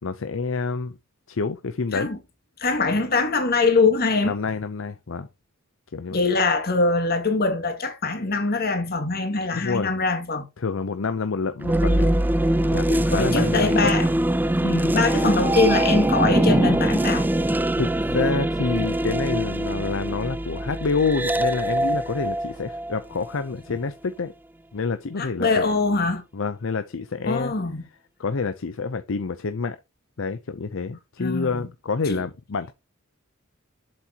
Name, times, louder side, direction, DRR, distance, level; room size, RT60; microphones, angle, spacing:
voice 1, 0.0-1.0 1.3-2.1 4.3-5.3 5.9-6.2 9.5-9.9 10.6-12.1 12.7-13.9 17.8-24.3 24.7-25.7 26.3-27.5 28.2-29.8 30.2-32.7, left 4 dB, 65° left, 0.6 m, -27 dB
voice 2, 2.6-4.3 6.1-10.4 13.1-14.1 14.6-17.3 25.2-26.2 27.3-27.8 31.2-31.7 32.1-32.2, left 3 dB, 50° left, 2.2 m, -23 dB
sound 1, 11.6-23.4, right 1 dB, 10° right, 0.4 m, -23 dB
7.6 x 7.3 x 2.9 m
head